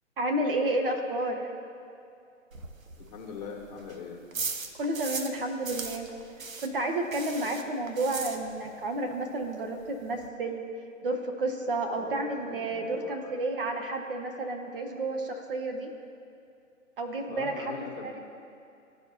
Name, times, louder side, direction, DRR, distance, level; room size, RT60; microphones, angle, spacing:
voice 1, 0.2-1.5 4.8-6.1 6.6-10.6 11.0-15.9 17.0-17.7 18.0-18.2, right 2 dB, 45° right, 4 dB, 0.9 m, -31 dB
sound 1, 2.5-5.4 5.6-8.9 9.1-9.2 9.5-9.6 9.8-10.3, right 4 dB, 85° right, 0.8 m, -38 dB
voice 2, 3.0-4.2 11.9-13.3 17.3-18.1, left 5 dB, 35° left, -2 dB, 1.3 m, -41 dB
13.5 x 4.6 x 2.8 m, 2.6 s
figure-of-eight pair, 135°, 40 cm